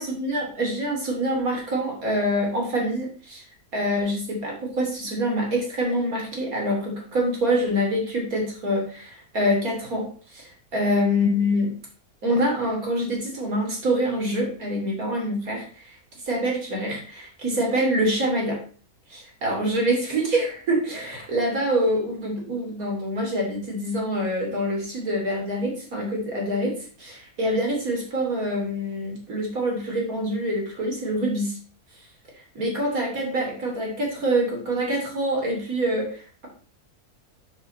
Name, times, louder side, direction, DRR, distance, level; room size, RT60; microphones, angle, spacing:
voice 1, 0.0-3.4 3.7-10.1 10.3-11.7 12.2-15.9 16.3-18.6 19.1-26.7 27.0-31.6 32.5-36.5, equal, 70° right, -1 dB, 3.3 m, -25 dB
7.2 x 7.2 x 4.3 m, 0.42 s
omnidirectional pair, 1.6 m